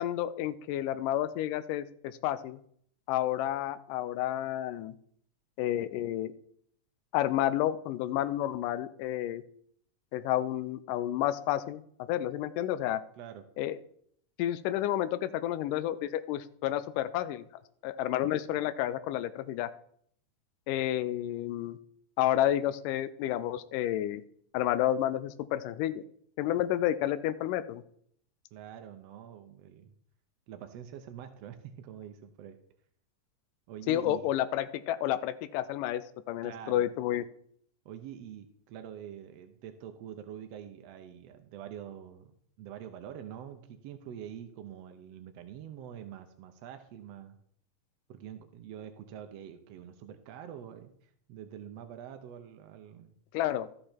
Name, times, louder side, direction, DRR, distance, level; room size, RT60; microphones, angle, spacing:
voice 1, 0.0-2.6 3.1-5.0 5.6-6.3 7.1-9.4 10.1-11.8 12.1-13.0 13.6-13.8 14.4-17.4 17.8-19.7 20.7-21.8 22.2-24.2 24.5-26.0 26.4-27.8 33.9-37.2 53.3-53.7, left 12 dB, 85° left, 13 dB, 2.2 m, -30 dB
voice 2, 28.5-29.9 30.5-32.6 33.7-34.3 36.4-36.9 37.8-47.4 48.1-53.1, right 9 dB, 80° right, 7 dB, 1.5 m, -45 dB
13.0 x 6.5 x 4.4 m, 0.65 s
omnidirectional pair, 3.7 m